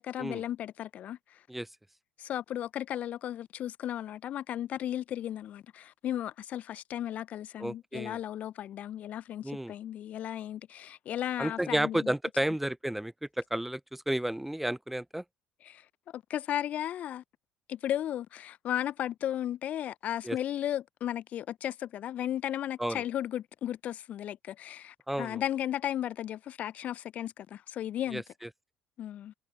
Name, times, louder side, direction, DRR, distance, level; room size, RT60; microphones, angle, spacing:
voice 1, 0.0-1.4 2.2-12.1 15.6-17.2 17.7-28.2 29.0-29.3, left 11 dB, 50° left, 0.7 m, -35 dB
voice 2, 7.6-8.2 9.4-9.7 11.4-15.2 20.2-20.4 22.8-23.0 25.1-25.4 28.1-28.5, right 1 dB, 5° right, 0.8 m, -32 dB
figure-of-eight pair, 55°, 3 cm